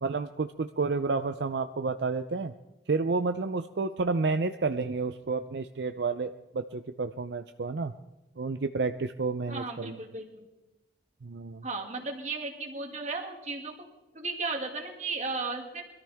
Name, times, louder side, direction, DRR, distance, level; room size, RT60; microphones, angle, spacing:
voice 1, 0.0-2.5 2.9-7.9 8.4-10.0 11.2-11.6, right 4 dB, 70° right, 8 dB, 0.5 m, -30 dB
voice 2, 9.5-10.5 11.6-13.7 14.1-15.8, right 3 dB, 40° right, 2 dB, 2.3 m, -35 dB
22.5 x 13.5 x 3.5 m, 1.0 s
head